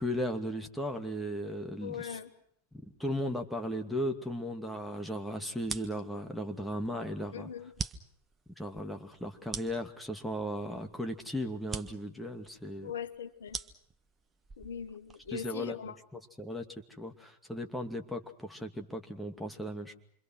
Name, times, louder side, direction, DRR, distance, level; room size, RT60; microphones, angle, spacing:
voice 1, 0.0-2.2 3.0-7.5 8.6-12.9 15.3-19.9, equal, 5° left, 3 dB, 2.5 m, -36 dB
voice 2, 1.8-2.3 7.3-7.7 12.8-13.6 14.6-16.0, left 8 dB, 65° left, 7 dB, 1.8 m, -40 dB
sound 1, 5.6-15.5, right 5 dB, 20° right, 1.4 m, -45 dB
27.5 x 24.5 x 6.4 m, 0.68 s
figure-of-eight pair, 90°, 0 cm